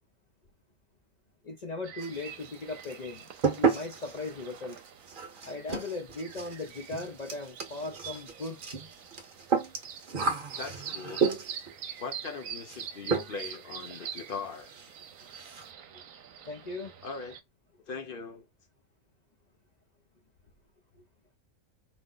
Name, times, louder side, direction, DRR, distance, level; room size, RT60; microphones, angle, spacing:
voice 1, 1.4-4.8 5.4-8.6 16.5-16.9, left 3 dB, 75° left, 0.4 m, -38 dB
sound 1, 1.8-17.4, right 8 dB, 70° right, 1.1 m, -45 dB
sound 2, 2.0-2.5 2.8-11.7 12.7-12.8 13.1-13.6 13.9-14.0 14.3-14.4 14.7-14.9 15.2-15.7, right 5 dB, 40° right, 1.0 m, -32 dB
voice 2, 10.6-11.2 12.0-14.7 17.0-17.4 17.9-18.5, left 5 dB, 45° left, 0.9 m, -40 dB
5.0 x 2.1 x 3.8 m
omnidirectional pair, 1.6 m